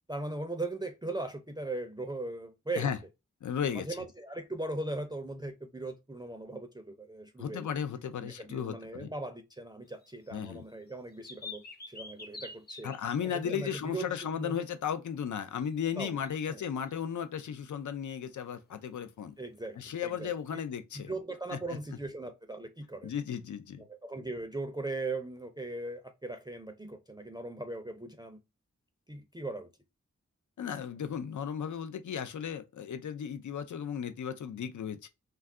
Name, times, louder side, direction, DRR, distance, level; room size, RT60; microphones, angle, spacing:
voice 1, 0.1-2.9 3.6-7.7 8.2-12.9 13.2-14.6 16.0-16.2 16.5-16.6 19.4-20.3 21.1-23.1 23.9-28.4 29.1-29.7, right 2 dB, 15° right, 0.4 m, -39 dB
voice 2, 3.4-4.0 7.4-9.1 10.3-10.6 12.8-19.3 19.8-21.1 21.5-21.8 23.0-23.8 30.6-35.1, left 8 dB, 90° left, 0.5 m, -35 dB
sound 1, 10.0-10.5 10.9-13.0 13.3-13.4 15.6-15.9 16.2-17.0 20.2-20.3, left 3 dB, 35° left, 0.6 m, -46 dB
2.3 x 2.1 x 3.5 m
wide cardioid pair, 65°, 29 cm